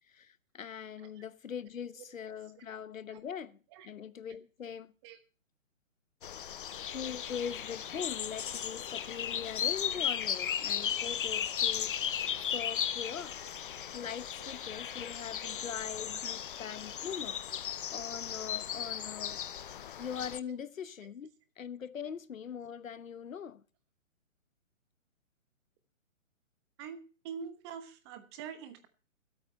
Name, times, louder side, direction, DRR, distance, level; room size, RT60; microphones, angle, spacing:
voice 1, 0.1-4.9 6.9-12.0 12.5-13.6 13.9-17.4 17.9-19.4 20.0-23.6, left 7 dB, 75° left, 1.1 m, -42 dB
sound 1, 6.2-20.4, left 9 dB, 40° left, 0.6 m, -36 dB
voice 2, 26.8-28.9, right 7 dB, 20° right, 1.1 m, -45 dB
13.5 x 8.7 x 5.7 m
hypercardioid pair, 150°, 40 cm